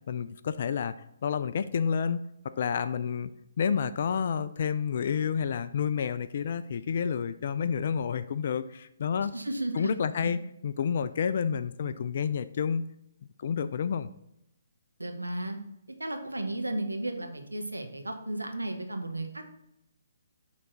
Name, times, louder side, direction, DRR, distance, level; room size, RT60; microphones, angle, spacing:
voice 1, 0.1-0.9 1.2-3.3 3.6-9.3 9.8-12.9 13.4-14.1, left 7 dB, 50° left, 13 dB, 0.3 m, -29 dB
voice 2, 9.3-9.9 10.2-10.3 11.8-11.9 15.0-15.6 16.0-19.4, right 1 dB, 80° right, 4 dB, 1.1 m, -34 dB
6.5 x 3.9 x 6.0 m, 0.80 s
figure-of-eight pair, 135°, 0 cm